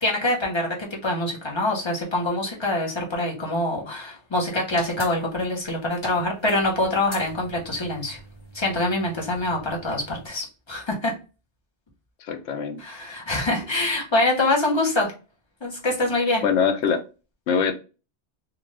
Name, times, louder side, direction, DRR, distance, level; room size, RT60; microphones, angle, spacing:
voice 1, 0.0-8.2 8.5-11.1 12.8-15.1 15.6-16.4, left 2 dB, 25° left, 0.9 m, -25 dB
sound 1, 4.7-10.3, equal, 45° left, 1.1 m, -43 dB
voice 2, 12.2-12.8 16.4-17.0 17.5-17.7, left 6 dB, 85° left, 0.9 m, -23 dB
2.5 x 2.4 x 3.2 m
omnidirectional pair, 1.2 m